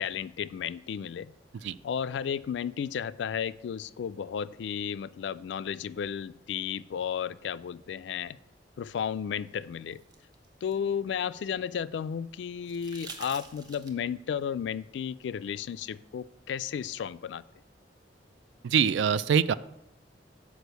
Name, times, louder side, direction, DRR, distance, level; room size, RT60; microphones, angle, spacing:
voice 1, 0.0-1.3 1.8-8.4 8.8-10.0 10.6-17.4, left 8 dB, 75° left, 17 dB, 0.3 m, -33 dB
sound 1, 9.5-11.7 12.6-14.2 15.9-16.0, right 3 dB, 25° right, 1.0 m, -48 dB
voice 2, 18.6-19.5, right 7 dB, 90° right, 17 dB, 0.3 m, -24 dB
6.3 x 5.0 x 6.7 m, 0.91 s
head